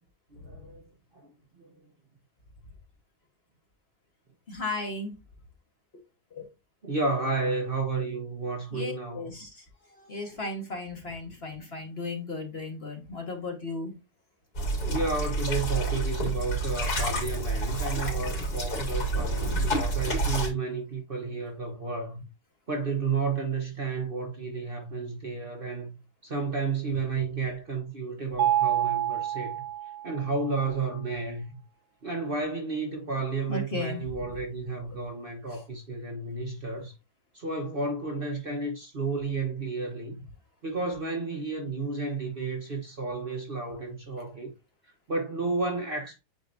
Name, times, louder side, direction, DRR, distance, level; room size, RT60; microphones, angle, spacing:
voice 1, 0.3-0.9 1.1-1.3 1.6-1.8 6.8-9.3 14.8-22.3 22.7-26.0 26.2-29.5 30.0-31.4 32.0-36.9 37.3-40.3 40.6-44.5 45.1-46.2, right 3 dB, 35° right, 1.3 m, -32 dB
voice 2, 4.5-5.1 6.3-6.5 8.7-9.6 10.0-13.9 33.5-34.0, left 3 dB, 40° left, 1.7 m, -35 dB
sound 1, 14.5-20.5, right 2 dB, 65° left, 4.1 m, -29 dB
Mallet percussion, 28.4-30.4, right 11 dB, 70° right, 0.6 m, -27 dB
9.5 x 4.4 x 2.6 m
omnidirectional pair, 1.7 m